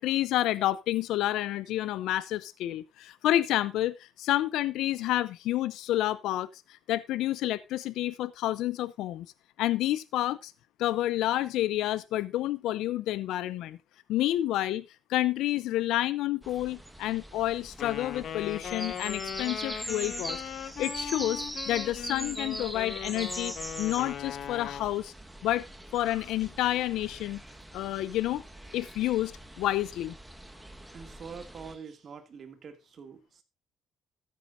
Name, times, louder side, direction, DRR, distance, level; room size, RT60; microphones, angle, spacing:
voice 1, 0.0-9.3 9.6-10.5 10.8-13.8 14.1-14.8 15.1-20.4 20.8-25.1 25.4-25.6 25.9-27.4 27.7-28.4 28.7-30.1, left 14 dB, 85° left, 0.6 m, -29 dB
sound 1, 16.4-31.7, right 1 dB, 5° right, 1.4 m, -42 dB
Wind instrument woodwind instrument, 17.8-24.9, left 8 dB, 60° left, 1.1 m, -39 dB
voice 2, 30.9-33.4, right 6 dB, 50° right, 2.3 m, -45 dB
14.0 x 9.5 x 2.6 m
cardioid pair, 95°, 0 cm